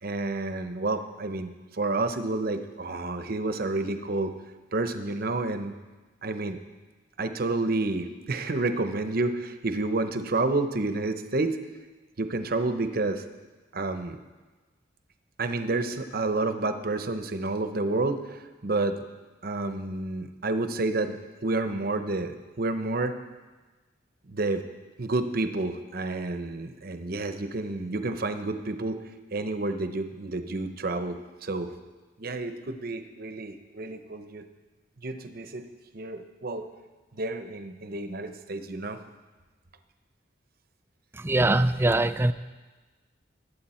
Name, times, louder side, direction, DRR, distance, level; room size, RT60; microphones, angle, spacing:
voice 1, 0.0-4.3 4.7-5.7 6.2-6.6 7.2-11.6 12.2-13.2 13.7-14.2 15.4-19.0 19.4-21.2 21.4-23.2 24.3-24.6 25.0-29.0 29.3-31.7 32.2-34.4 35.0-35.6 35.9-36.7 37.1-39.0, right 2 dB, 50° right, 9 dB, 0.8 m, -29 dB
voice 2, 41.1-42.3, right 2 dB, 15° right, 12 dB, 0.3 m, -22 dB
20.5 x 8.4 x 4.3 m, 1.2 s
head